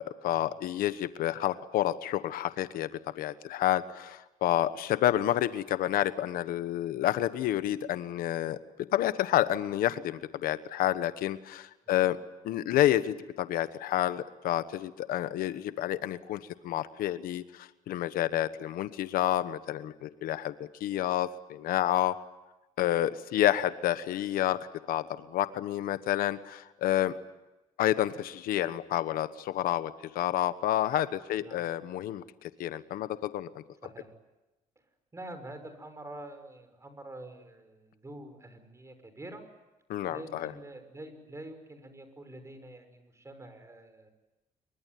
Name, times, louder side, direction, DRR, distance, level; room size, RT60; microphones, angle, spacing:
voice 1, 0.0-2.9 3.1-8.6 8.9-12.2 12.4-20.5 20.8-22.1 22.8-24.6 24.9-27.1 27.8-33.6 39.9-40.5, left 13 dB, 80° left, 13 dB, 1.2 m, -29 dB
voice 2, 35.1-39.4 40.1-44.1, right 1 dB, 20° right, 8 dB, 6.0 m, -46 dB
27.0 x 23.5 x 9.3 m, 1.0 s
cardioid pair, 95°, 15 cm